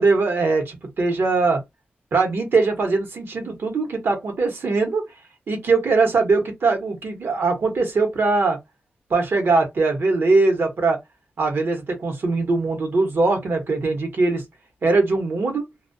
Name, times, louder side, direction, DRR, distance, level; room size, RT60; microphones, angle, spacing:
voice 1, 0.0-1.6 2.1-5.0 5.5-8.6 9.1-11.0 11.4-14.4 14.8-15.6, right 3 dB, 70° right, 0.9 m, -21 dB
2.3 x 2.2 x 2.6 m
wide cardioid pair, 100°, 4 cm